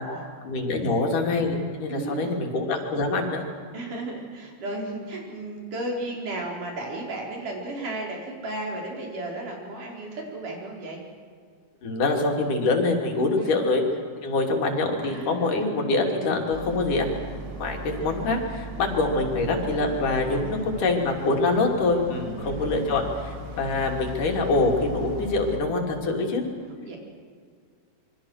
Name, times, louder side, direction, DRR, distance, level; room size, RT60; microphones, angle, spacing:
voice 1, 0.4-3.5 11.8-13.8 14.2-17.2 17.6-26.4, left 3 dB, 85° left, 2 dB, 4.5 m, -25 dB
voice 2, 1.9-2.4 3.7-11.0 13.4-13.6 15.0-15.8 20.1-21.4 22.1-22.9 26.8-27.0, right 2 dB, 80° right, 0 dB, 6.1 m, -35 dB
Boat Water vehicle, 16.5-25.6, right 1 dB, 35° right, 2.9 m, -38 dB
27.0 x 23.5 x 6.5 m, 2.1 s
omnidirectional pair, 3.6 m